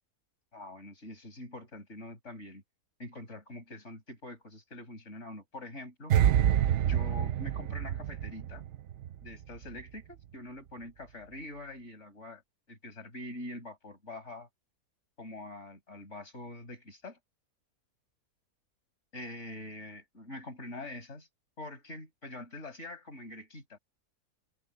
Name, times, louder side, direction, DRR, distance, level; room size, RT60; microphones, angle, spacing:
voice 1, 0.5-2.6 3.0-6.2 6.9-8.6 9.2-12.4 12.7-14.5 15.2-17.2 19.1-21.3 21.6-23.8, left 1 dB, 50° left, 5.7 m, -44 dB
sound 1, 6.1-9.3 9.6-9.8, right 10 dB, 60° right, 0.8 m, -27 dB
omnidirectional pair, 1.6 m